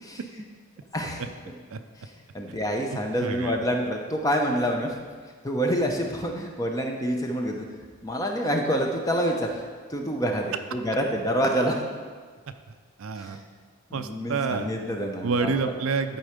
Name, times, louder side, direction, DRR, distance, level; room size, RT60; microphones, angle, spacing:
voice 1, 2.3-4.9 5.4-7.6 8.0-9.5 9.9-11.8 13.9-15.5, equal, 15° left, 2 dB, 0.8 m, -27 dB
voice 2, 2.9-3.6 13.0-13.4 13.9-14.7 15.2-16.2, right 5 dB, 75° right, 9 dB, 0.5 m, -28 dB
11.5 x 4.5 x 5.1 m, 1.6 s
head